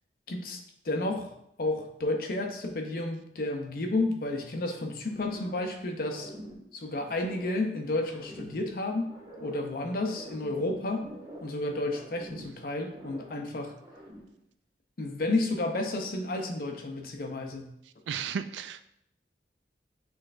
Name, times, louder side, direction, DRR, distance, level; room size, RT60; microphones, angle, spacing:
voice 1, 0.3-6.3 6.7-9.1 9.4-11.1 11.4-13.8 15.0-17.7, left 2 dB, 55° left, 4 dB, 0.6 m, -31 dB
sound 1, 5.0-5.8 6.0-7.7 8.0-9.7 10.0-11.6 11.9-13.5 13.8-14.4, right 1 dB, 20° right, 0.7 m, -47 dB
voice 2, 18.1-18.8, right 7 dB, 90° right, 11 dB, 0.3 m, -34 dB
6.3 x 3.2 x 2.5 m, 0.75 s
head